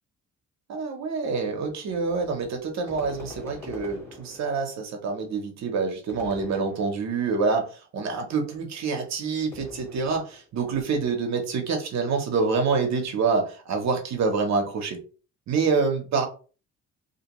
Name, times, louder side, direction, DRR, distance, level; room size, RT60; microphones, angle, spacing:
voice 1, 0.7-15.0 15.5-16.3, right 4 dB, 65° right, 3 dB, 0.7 m, -26 dB
sound 1, 2.9-4.8 6.1-7.3 9.5-10.5, left 2 dB, 10° left, 1.1 m, -44 dB
2.5 x 2.2 x 2.9 m, 0.37 s
cardioid pair, 90°, 30 cm